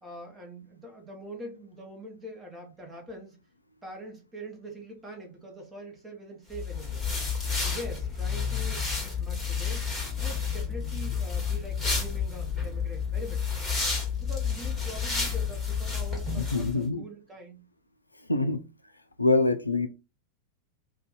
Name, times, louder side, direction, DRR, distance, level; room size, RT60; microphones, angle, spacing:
voice 1, 0.0-3.4 3.8-7.0 7.6-9.9 10.2-13.5 14.2-17.6, equal, 10° right, 1.1 m, -43 dB
sound 1, 6.5-16.7, left 5 dB, 10° left, 1.3 m, -30 dB
voice 2, 16.4-17.0 18.3-18.6 19.2-19.9, left 2 dB, 85° left, 0.3 m, -25 dB
2.6 x 2.3 x 3.8 m
figure-of-eight pair, 90°, 0 cm